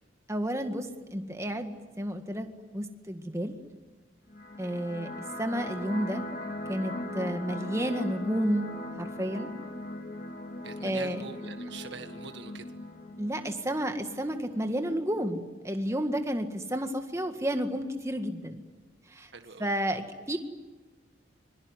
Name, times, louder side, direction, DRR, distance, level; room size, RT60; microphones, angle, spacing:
voice 1, 0.3-3.5 4.6-6.2 6.7-8.7 9.0-9.5 10.8-11.2 13.2-18.6 19.1-19.3 19.6-20.4, equal, 15° right, 6 dB, 1.8 m, -31 dB
sound 1, 4.3-15.3, left 1 dB, 40° left, 2.3 m, -40 dB
voice 2, 10.6-12.7 19.3-19.7, right 4 dB, 60° right, 7 dB, 1.7 m, -43 dB
25.5 x 23.0 x 9.8 m, 1.3 s
head